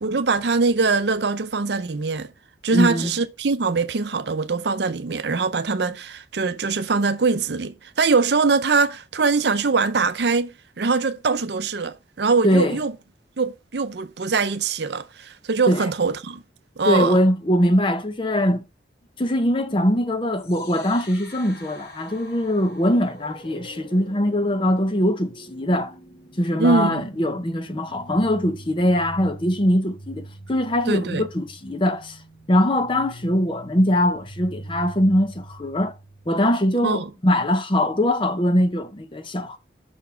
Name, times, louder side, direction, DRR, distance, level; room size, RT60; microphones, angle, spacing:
voice 1, 0.0-2.3 2.6-12.9 13.4-16.4 16.8-17.2 26.6-27.1 30.9-31.3 36.8-37.1, right 4 dB, 65° right, 0.6 m, -22 dB
voice 2, 2.7-3.1 12.4-12.8 15.7-15.9 16.9-18.6 19.2-25.9 26.4-32.2 32.5-35.9 36.3-39.6, left 1 dB, 30° left, 0.7 m, -22 dB
sound 1, 20.3-36.3, right 1 dB, 55° left, 1.9 m, -44 dB
5.9 x 4.1 x 5.5 m
head